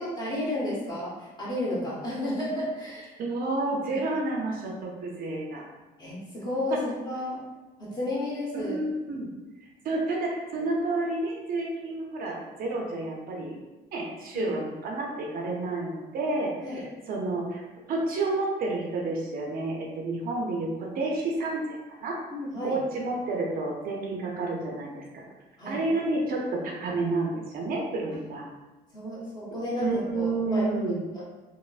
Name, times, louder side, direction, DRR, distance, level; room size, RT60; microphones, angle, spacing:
voice 1, 0.2-3.1 6.0-7.4 7.8-8.8 14.3-14.6 16.6-16.8 22.3-22.8 25.6-25.8 28.1-28.2 28.9-30.7 31.1-31.2, left 1 dB, 25° left, -7 dB, 1.1 m, -32 dB
voice 2, 3.2-5.6 6.7-6.8 8.5-9.3 9.8-13.6 13.9-21.6 22.0-22.2 22.6-25.2 25.6-28.5 29.8-31.0, right 2 dB, 60° right, -1 dB, 0.5 m, -30 dB
3.1 x 2.0 x 2.3 m, 1.1 s
cardioid pair, 110°, 17 cm